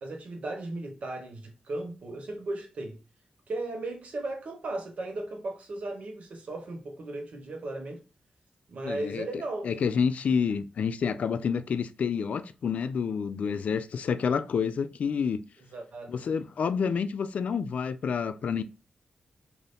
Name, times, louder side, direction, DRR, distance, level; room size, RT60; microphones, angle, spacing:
voice 1, 0.0-3.0 3.5-8.0 8.7-9.7 15.7-16.1, right 2 dB, 65° right, 0.9 m, -36 dB
voice 2, 8.8-9.3 9.6-15.4 16.1-18.6, left 6 dB, 70° left, 0.3 m, -28 dB
2.7 x 2.7 x 3.3 m
cardioid pair, 80°, 2 cm